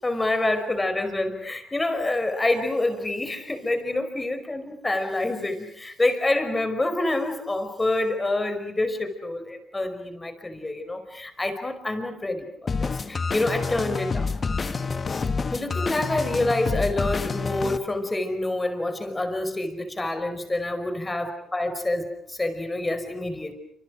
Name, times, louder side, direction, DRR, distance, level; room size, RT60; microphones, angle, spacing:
voice 1, 0.0-14.3 15.5-23.5, left 2 dB, 20° left, 8 dB, 5.1 m, -27 dB
sound 1, 12.7-17.8, left 4 dB, 35° left, 1.6 m, -28 dB
28.0 x 26.5 x 6.3 m, 0.69 s
cardioid pair, 90°, 0 cm